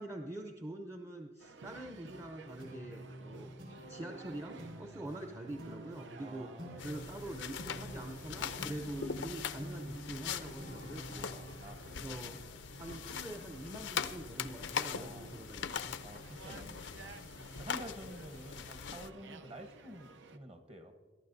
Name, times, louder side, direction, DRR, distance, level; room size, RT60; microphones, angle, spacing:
voice 1, 0.0-3.5 3.9-6.5 6.8-11.5 12.0-12.3 12.8-16.0, right 1 dB, 15° right, 4 dB, 0.6 m, -45 dB
sound 1, 1.4-20.4, right 3 dB, 85° right, 0.7 m, -54 dB
sound 2, 2.6-13.4, right 1 dB, 65° right, 4.0 m, -49 dB
voice 2, 6.2-6.9 11.1-12.4 14.9-15.3 16.0-20.9, right 1 dB, 30° right, 7 dB, 1.0 m, -50 dB
sound 3, 6.8-19.1, left 7 dB, 85° left, 0.6 m, -42 dB
23.5 x 11.5 x 2.6 m, 1.4 s
head